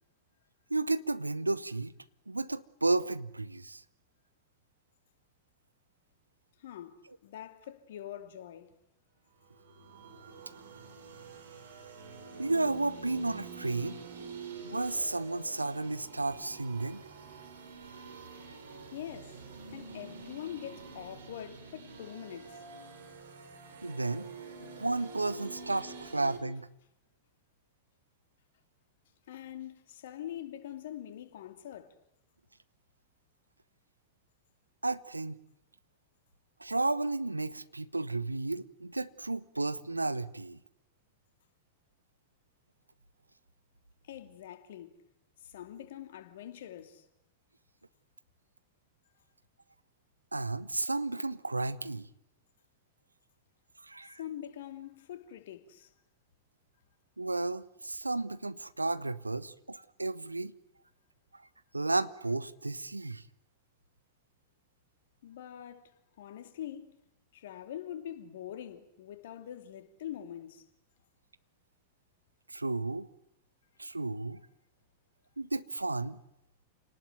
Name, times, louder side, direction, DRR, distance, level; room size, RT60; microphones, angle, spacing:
voice 1, 0.7-1.9 2.3-3.8 12.4-14.0 14.6-17.0 23.8-24.3 24.6-26.7 34.8-35.4 36.6-40.6 50.3-52.1 53.8-54.2 57.2-60.5 61.3-61.4 61.7-63.2 72.5-73.1 73.8-74.4 75.4-76.2, right 2 dB, 80° right, 1.1 m, -33 dB
voice 2, 6.6-8.7 18.9-22.6 29.3-32.0 44.0-44.9 45.4-47.1 54.2-55.9 65.2-67.0 67.3-70.7, left 11 dB, 60° left, 2.8 m, -44 dB
sound 1, 9.5-26.4, right 4 dB, 65° right, 5.2 m, -47 dB
29.0 x 19.0 x 9.4 m
figure-of-eight pair, 90°, 0 cm